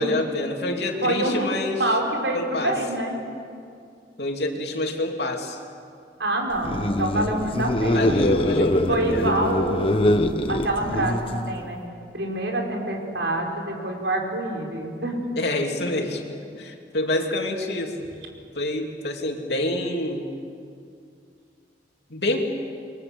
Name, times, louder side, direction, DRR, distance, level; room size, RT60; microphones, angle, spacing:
voice 1, 0.0-1.8 2.3-2.8 4.2-5.6 7.9-9.3 15.4-18.1 18.5-20.3 22.1-22.5, left 1 dB, 70° left, 2 dB, 3.1 m, -27 dB
voice 2, 1.0-1.5 1.8-3.2 6.2-8.2 8.9-10.1 10.5-11.2 11.5-11.8 12.1-15.2, right 1 dB, 85° right, 1 dB, 5.2 m, -26 dB
sound 1, 6.6-11.7, left 1 dB, 30° left, 1.1 m, -23 dB
28.5 x 23.5 x 8.0 m, 2.4 s
head